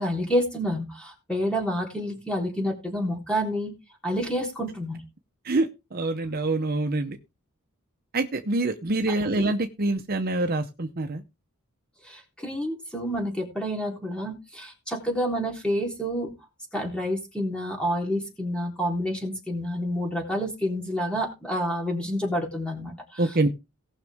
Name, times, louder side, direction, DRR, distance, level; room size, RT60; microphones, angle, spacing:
voice 1, 0.0-3.7 4.0-5.0 9.2-9.5 12.0-16.3 16.7-23.2, equal, 5° left, 0 dB, 3.6 m, -29 dB
voice 2, 5.4-7.2 8.1-11.2 23.2-23.5, right 2 dB, 45° right, 6 dB, 0.8 m, -26 dB
18.5 x 6.3 x 3.6 m, 0.26 s
head